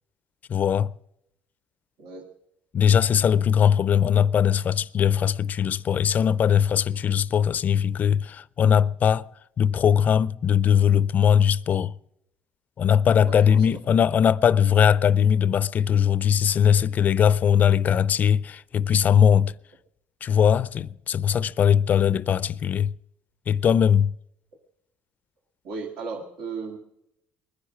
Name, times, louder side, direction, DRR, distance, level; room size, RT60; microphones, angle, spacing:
voice 1, 0.5-0.9 2.7-9.3 9.6-11.9 12.8-19.5 20.2-22.9 23.5-24.1, left 8 dB, 45° left, 0.5 m, -20 dB
voice 2, 2.0-2.3 13.1-13.8 21.9-22.0 25.6-26.8, right 4 dB, 75° right, 2.1 m, -36 dB
20.5 x 10.5 x 6.2 m
supercardioid pair, 85°, 4 cm